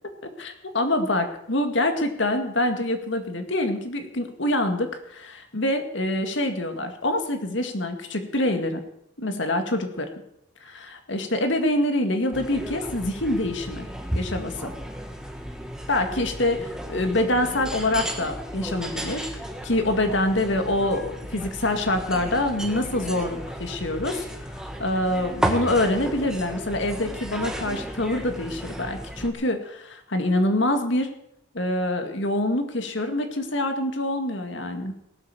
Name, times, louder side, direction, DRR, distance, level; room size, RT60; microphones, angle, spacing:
voice 1, 0.4-8.8 9.2-10.1 10.6-13.9 14.2-14.7 15.9-31.2 31.5-34.9, left 1 dB, 70° left, 6 dB, 2.1 m, -25 dB
sound 1, 12.3-29.3, right 1 dB, 5° right, 1.6 m, -34 dB
18.5 x 8.1 x 6.9 m, 0.75 s
head